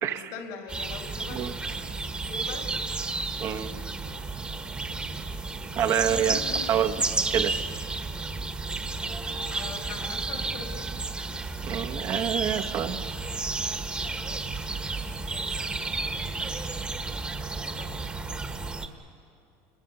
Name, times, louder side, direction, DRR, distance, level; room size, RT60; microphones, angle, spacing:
voice 1, 0.0-2.7 4.0-4.3 5.7-7.2 9.3-10.9 14.7-15.7 17.5-18.0, left 5 dB, 65° left, 3 dB, 3.2 m, -43 dB
sound 1, 0.7-18.9, right 3 dB, 15° right, 1.3 m, -32 dB
voice 2, 5.8-6.4 6.7-6.9 7.3-7.5 11.6-13.0, right 9 dB, 45° right, 7 dB, 1.1 m, -27 dB
29.5 x 21.5 x 7.0 m, 2.5 s
supercardioid pair, 135°, 7 cm